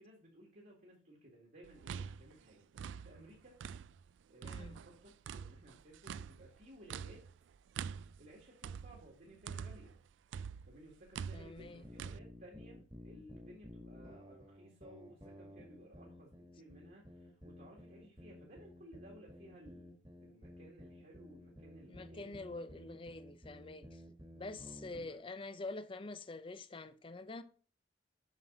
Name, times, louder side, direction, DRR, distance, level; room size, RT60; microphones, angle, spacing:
voice 1, 0.0-3.6 4.3-7.3 8.2-9.9 10.7-23.0 24.6-25.2, equal, 55° right, 2.0 m, -58 dB
sound 1, 1.6-4.1 4.4-10.0 10.3-12.2, right 7 dB, 85° right, 0.3 m, -45 dB
voice 2, 4.4-4.8 11.3-11.9 21.9-24.0 24.3-27.4, left 3 dB, 30° left, 0.5 m, -46 dB
sound 2, 11.6-25.1, left 1 dB, 25° right, 1.7 m, -54 dB
7.4 x 6.0 x 3.8 m
head